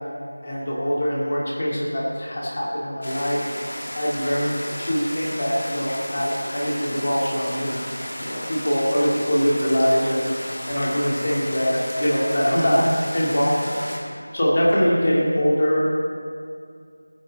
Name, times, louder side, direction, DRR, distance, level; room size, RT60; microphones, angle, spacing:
voice 1, 0.4-3.4 3.9-4.5 4.8-7.8 8.2-10.3 10.7-12.8 13.1-13.7 14.3-15.9, equal, 40° left, -6 dB, 2.9 m, -22 dB
sound 1, 3.0-14.0, equal, 55° left, 3.1 m, -34 dB
18.5 x 10.5 x 3.8 m, 2.3 s
figure-of-eight pair, 175°, 0 cm